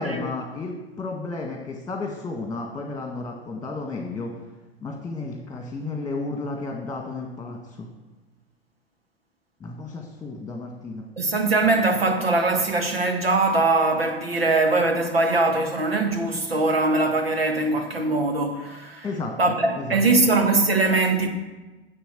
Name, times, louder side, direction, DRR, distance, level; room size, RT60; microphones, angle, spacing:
voice 1, 0.0-4.3 4.8-7.9 9.6-11.0 19.0-19.3 19.8-20.0, left 3 dB, 10° left, 1.8 m, -32 dB
voice 2, 11.2-19.1 19.4-21.3, right 3 dB, 80° right, 1.8 m, -22 dB
11.5 x 7.3 x 7.5 m
figure-of-eight pair, 90°, 30 cm